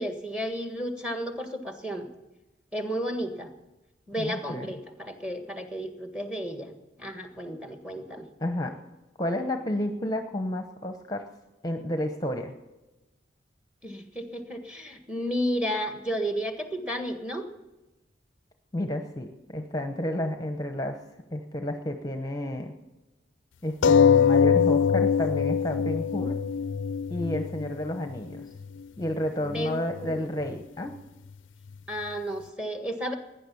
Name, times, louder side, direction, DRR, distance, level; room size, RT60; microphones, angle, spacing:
voice 1, 0.0-2.1 2.7-3.5 4.1-6.7 7.0-8.3 13.8-17.5 29.4-30.2 31.9-33.1, equal, 5° right, 6 dB, 1.6 m, -32 dB
voice 2, 4.2-4.7 8.4-8.7 9.2-11.3 11.6-12.5 18.7-21.0 21.3-22.7 23.6-26.4 27.1-28.5 29.0-30.9, left 1 dB, 20° left, 6 dB, 0.9 m, -31 dB
sound 1, 23.8-28.8 29.6-29.7 30.0-30.1, left 7 dB, 85° left, 0.5 m, -23 dB
18.0 x 10.5 x 7.0 m, 1.1 s
head